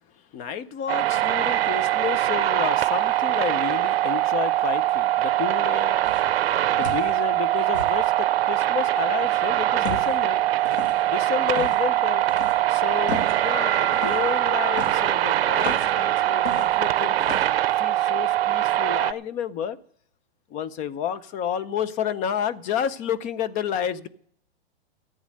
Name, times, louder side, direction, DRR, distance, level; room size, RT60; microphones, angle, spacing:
voice 1, 0.3-6.0 6.7-10.4 11.1-12.2 12.7-13.1 13.4-17.2 17.8-19.8 20.5-24.1, left 8 dB, 25° left, 0.6 m, -30 dB
sound 1, 0.9-19.1, right 13 dB, 65° right, 0.7 m, -22 dB
sound 2, 6.0-6.3 6.8-7.1 7.7-8.0 9.8-10.2 10.6-11.0 11.5-11.8 12.3-12.6 13.1-13.4 13.9-14.3 14.8-15.9 16.5-16.9 17.2-17.5, left 3 dB, 85° left, 2.9 m, -33 dB
14.5 x 8.7 x 6.5 m
hypercardioid pair, 135°, 32 cm